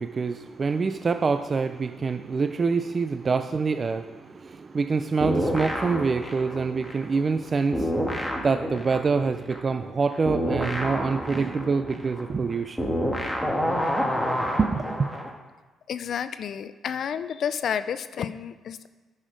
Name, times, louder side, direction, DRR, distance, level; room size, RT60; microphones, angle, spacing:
voice 1, 0.0-13.0 14.6-15.1, right 4 dB, 35° right, 9 dB, 0.4 m, -26 dB
sound 1, 5.2-7.5 7.7-15.3, equal, ahead, 1.5 m, -29 dB
voice 2, 15.9-18.9, left 8 dB, 60° left, 12 dB, 0.4 m, -30 dB
9.9 x 6.5 x 5.1 m, 1.2 s
cardioid pair, 90°, 0 cm